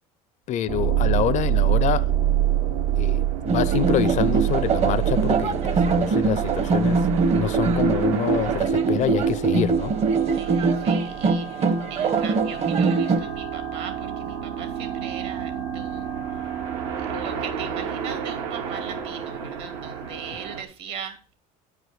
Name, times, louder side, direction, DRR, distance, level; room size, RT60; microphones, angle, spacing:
voice 1, 0.5-2.1 3.0-7.0 7.3-9.9, left 10 dB, 45° left, 0.5 m, -26 dB
sound 1, 0.7-20.6, right 10 dB, 85° right, 2.0 m, -28 dB
sound 2, 3.5-13.2, right 4 dB, 35° right, 0.9 m, -22 dB
voice 2, 10.3-16.1 17.0-21.3, right 8 dB, 70° right, 2.4 m, -39 dB
9.0 x 5.1 x 6.2 m
supercardioid pair, 105°, 18 cm